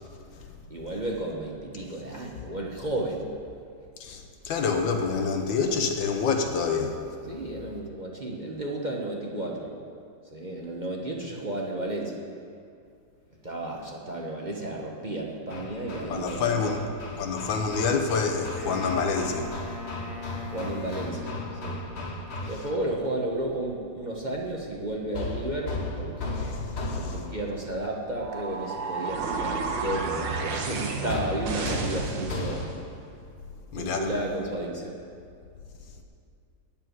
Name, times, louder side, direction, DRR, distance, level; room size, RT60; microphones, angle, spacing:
voice 1, 0.7-3.3 7.3-9.8 10.3-12.2 13.4-16.8 20.5-21.8 22.5-32.7 33.7-35.0, right 1 dB, 30° right, -1 dB, 1.0 m, -33 dB
voice 2, 4.0-7.0 16.1-16.8 17.2-19.5 26.5-26.7 27.1-27.2 33.7-34.0, left 5 dB, 90° left, 4 dB, 1.7 m, -27 dB
Hammer, 15.5-22.9 25.1-27.6 31.1-33.0, left 2 dB, 45° left, 1.1 m, -36 dB
Wind instrument woodwind instrument, 18.6-22.0, left 4 dB, ahead, 1.8 m, -41 dB
sound 1, 28.2-32.8, right 4 dB, 80° right, 1.8 m, -32 dB
14.0 x 5.4 x 9.2 m, 2.4 s
omnidirectional pair, 2.0 m